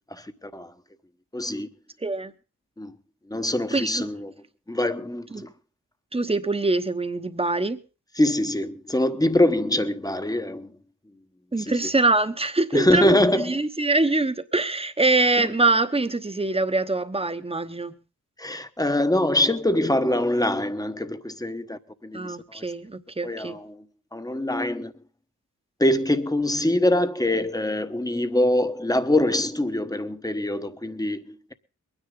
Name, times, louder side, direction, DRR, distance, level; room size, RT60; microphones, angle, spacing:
voice 1, 0.1-0.7 1.3-1.7 2.8-2.9 3.3-4.3 4.7-5.5 8.1-10.7 11.6-11.9 12.7-13.6 15.4-15.5 18.4-22.6 23.2-23.9 24.1-24.9 25.8-31.5, left 1 dB, 10° left, 1.1 m, -24 dB
voice 2, 3.7-4.0 5.3-5.4 6.1-7.8 11.5-17.9 22.1-23.6, right 2 dB, 20° right, 1.0 m, -24 dB
22.5 x 9.9 x 3.7 m
wide cardioid pair, 90°, 30 cm